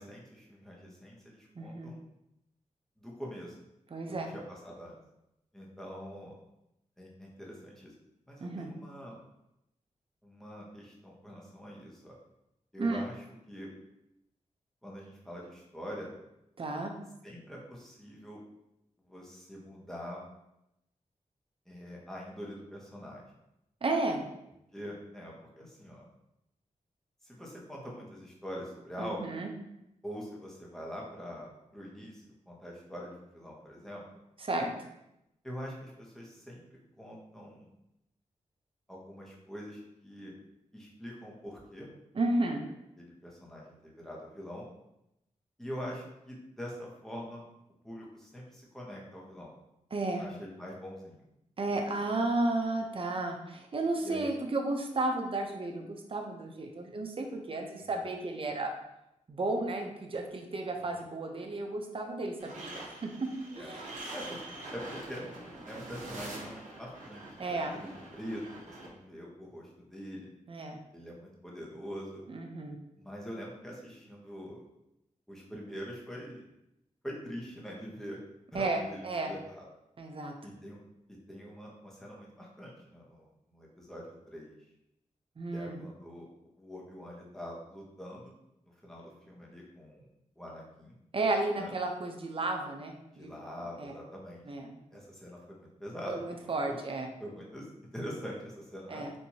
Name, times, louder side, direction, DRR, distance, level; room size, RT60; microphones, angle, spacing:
voice 1, 0.0-2.0 3.0-3.5 4.1-5.0 5.5-6.4 7.0-7.9 8.3-9.2 10.2-12.1 12.7-13.1 13.5-13.7 14.8-16.1 17.2-18.4 19.0-20.2 21.7-23.2 24.7-26.0 27.2-29.3 30.0-34.0 35.4-37.7 38.9-40.3 40.7-41.9 43.0-44.6 45.6-47.4 47.8-49.5 50.2-51.2 54.0-54.3 57.8-57.9 60.8-61.0 63.5-63.7 64.1-64.4 64.7-70.3 70.9-72.2 73.0-74.6 75.3-76.4 77.0-78.2 78.5-79.7 80.4-80.8 81.3-84.6 85.5-86.3 86.6-88.3 88.8-90.1 90.4-91.0 91.6-91.7 93.1-94.4 94.9-96.8 97.2-97.7 97.9-99.0, equal, 5° left, -3 dB, 1.1 m, -44 dB
voice 2, 1.6-1.9 3.9-4.3 8.4-8.7 12.8-13.0 16.6-17.0 23.8-24.2 29.0-29.5 34.4-34.7 42.1-42.6 49.9-50.2 51.6-58.7 59.3-63.3 63.6-64.0 67.4-67.8 70.5-70.8 72.3-72.8 78.5-79.3 80.0-80.3 85.4-85.8 91.1-93.3 93.8-94.0 94.5-94.7 96.1-97.1 98.9-99.1, right 2 dB, 45° right, 3 dB, 0.6 m, -33 dB
sound 1, 62.4-68.9, right 2 dB, 80° right, 1.0 m, -45 dB
4.5 x 2.7 x 2.8 m, 0.85 s
cardioid pair, 70°, 13 cm